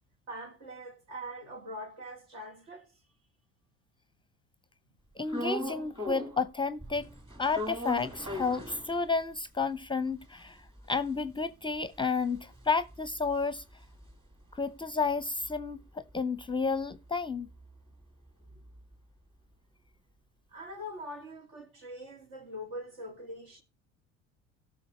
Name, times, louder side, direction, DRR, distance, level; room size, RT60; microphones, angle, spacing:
voice 1, 0.3-2.9 18.5-18.6 20.5-23.6, equal, 70° right, 2.5 m, -43 dB
voice 2, 5.2-7.1 7.4-10.6 10.9-13.6 14.5-17.5, left 4 dB, 15° left, 0.6 m, -31 dB
sound 1, 5.3-6.5 6.8-9.4 9.8-9.9 10.1-14.6 14.9-18.9, left 1 dB, 15° right, 1.6 m, -41 dB
17.5 x 6.0 x 3.1 m
figure-of-eight pair, 65°, 36 cm